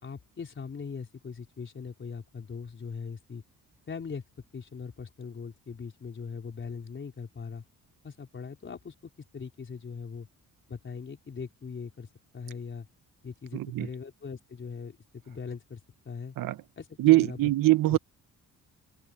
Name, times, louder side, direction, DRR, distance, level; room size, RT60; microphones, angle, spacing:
voice 1, 0.0-3.4 3.9-4.2 4.5-7.6 8.0-10.3 10.7-12.1 12.3-12.9 13.2-15.8 16.0-16.4 16.8-17.4 17.9-18.0, left 5 dB, 35° left, 4.5 m, -40 dB
voice 2, 13.5-13.9 16.4-16.6 17.0-18.0, right 18 dB, 80° right, 1.0 m, -22 dB
open air
cardioid pair, 135°, 33 cm